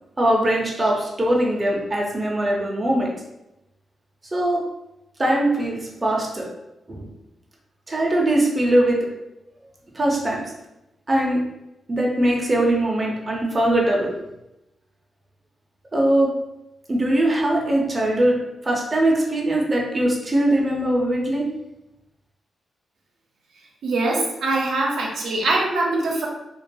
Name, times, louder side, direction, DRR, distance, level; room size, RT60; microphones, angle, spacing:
voice 1, 0.2-3.1 4.3-4.6 5.2-6.5 6.9-7.1 7.9-9.1 9.9-10.5 11.1-11.5 11.9-14.1 15.9-16.4 16.9-21.6, right 1 dB, 20° right, -2 dB, 0.5 m, -21 dB
voice 2, 23.8-26.3, right 2 dB, 85° right, -2 dB, 0.5 m, -23 dB
2.3 x 2.2 x 2.6 m, 0.91 s
wide cardioid pair, 125°, 0 cm